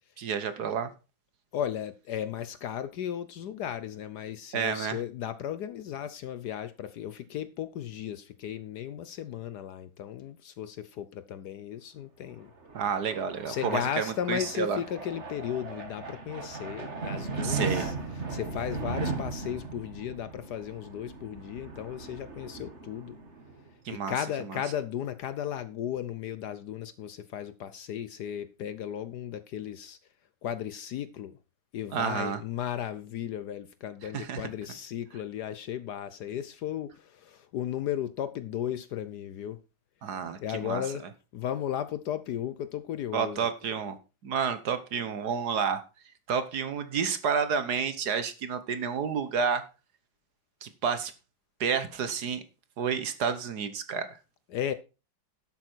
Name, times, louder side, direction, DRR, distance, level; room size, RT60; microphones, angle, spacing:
voice 1, 0.2-0.9 4.5-5.0 12.7-14.8 17.4-17.9 23.8-24.1 24.5-24.6 31.9-32.4 34.1-34.5 40.0-40.8 43.1-44.0 44.2-45.8 46.3-49.6 50.6-51.1 51.6-52.4 52.8-54.1, right 6 dB, 60° right, 1.5 m, -30 dB
voice 2, 1.5-12.5 13.5-23.2 23.9-30.0 30.4-31.4 31.7-39.6 40.4-41.1 41.3-43.5 54.5-54.7, left 10 dB, 65° left, 1.1 m, -35 dB
sound 1, 12.4-23.7, right 4 dB, 35° right, 2.0 m, -37 dB
12.0 x 8.2 x 4.5 m
omnidirectional pair, 2.2 m